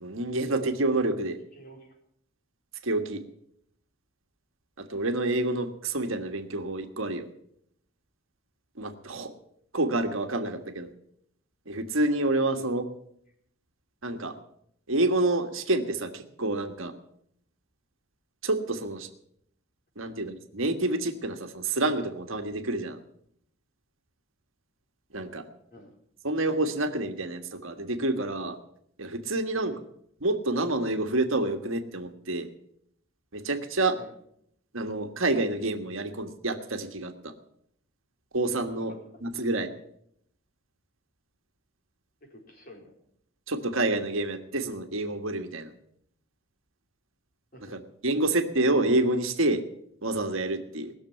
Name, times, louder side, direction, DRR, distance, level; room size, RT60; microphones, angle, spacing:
voice 1, 0.0-1.4 2.8-3.2 4.8-7.3 8.8-9.3 9.7-10.9 11.7-12.8 14.0-14.3 14.9-16.9 18.4-19.1 20.0-23.0 25.1-25.4 26.2-28.6 29.0-29.7 30.2-32.5 33.3-34.0 34.7-37.3 38.3-38.9 39.2-39.7 43.5-45.7 48.0-49.6 50.0-50.9, right 2 dB, 70° right, 6 dB, 1.6 m, -28 dB
voice 2, 1.5-2.0 9.1-9.3 12.5-12.7 20.0-20.3 25.7-25.9 29.5-29.7 33.9-34.1 38.9-39.0 42.2-42.9 47.5-47.8, equal, 40° left, 0 dB, 4.2 m, -50 dB
19.5 x 6.8 x 9.2 m, 0.71 s
head